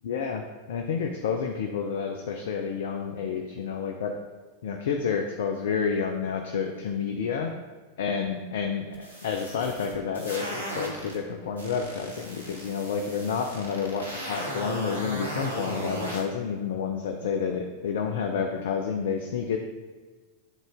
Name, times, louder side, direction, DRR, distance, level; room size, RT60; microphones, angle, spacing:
voice 1, 0.0-4.1 4.6-7.5 8.0-19.6, left 6 dB, 60° left, 4 dB, 0.5 m, -30 dB
sound 1, 8.9-11.2 11.6-16.2, equal, 85° left, 1.4 m, -36 dB
9.1 x 3.8 x 3.6 m, 1.4 s
figure-of-eight pair, 90°, 0 cm